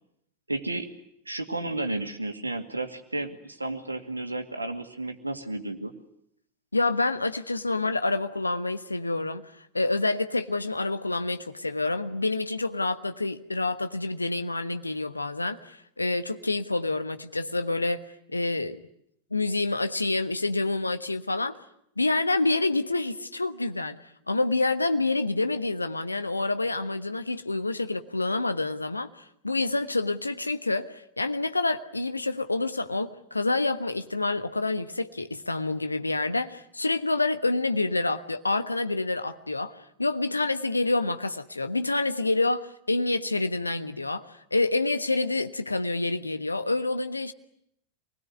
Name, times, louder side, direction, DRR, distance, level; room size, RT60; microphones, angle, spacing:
voice 1, 0.5-0.9 1.3-5.9, right 2 dB, 80° right, 7 dB, 2.3 m, -32 dB
voice 2, 6.7-9.4 9.7-18.8 19.3-21.6 22.0-24.0 24.3-44.2 44.5-47.3, left 2 dB, 80° left, 9 dB, 1.3 m, -27 dB
26.5 x 20.5 x 9.7 m, 0.75 s
figure-of-eight pair, 90°, 0 cm